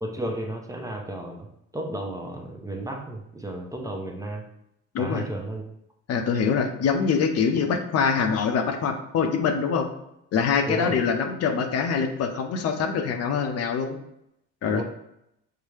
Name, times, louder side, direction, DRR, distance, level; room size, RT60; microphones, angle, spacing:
voice 1, 0.0-4.5 5.0-5.6 10.7-11.0 14.7-14.8, right 1 dB, 10° right, 2 dB, 0.6 m, -33 dB
voice 2, 4.9-5.2 6.1-9.9 10.3-14.0 14.6-14.8, left 6 dB, 55° left, 5 dB, 0.6 m, -24 dB
5.5 x 2.1 x 3.2 m, 0.80 s
cardioid pair, 90°, 30 cm